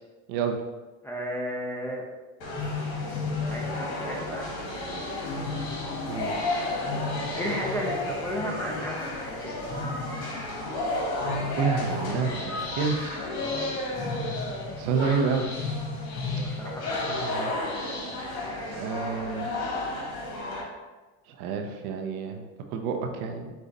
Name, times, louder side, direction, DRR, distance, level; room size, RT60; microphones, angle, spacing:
voice 1, 1.0-2.0 3.5-4.6 7.3-9.1 9.4-9.6 13.4-13.7 16.1-17.1, equal, 5° left, -2 dB, 0.8 m, -34 dB
sound 1, 2.4-20.6, left 2 dB, 55° left, 1.5 m, -31 dB
voice 2, 11.5-13.3 14.8-15.5 17.1-17.5 18.7-19.5 21.4-23.5, right 5 dB, 70° right, 4 dB, 0.7 m, -29 dB
5.3 x 2.4 x 3.9 m, 1.2 s
hypercardioid pair, 95°, 45 cm